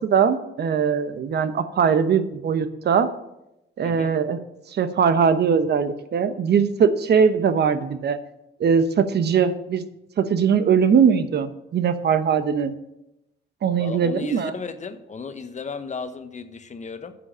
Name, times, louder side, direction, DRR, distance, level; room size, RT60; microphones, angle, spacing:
voice 1, 0.0-3.1 3.8-4.4 4.7-8.2 8.6-9.8 10.2-12.8 13.6-14.5, right 6 dB, 55° right, 11 dB, 0.9 m, -20 dB
voice 2, 3.8-4.2 13.8-17.1, left 5 dB, 35° left, 9 dB, 1.1 m, -35 dB
9.9 x 7.0 x 7.4 m, 0.88 s
cardioid pair, 90°, 20 cm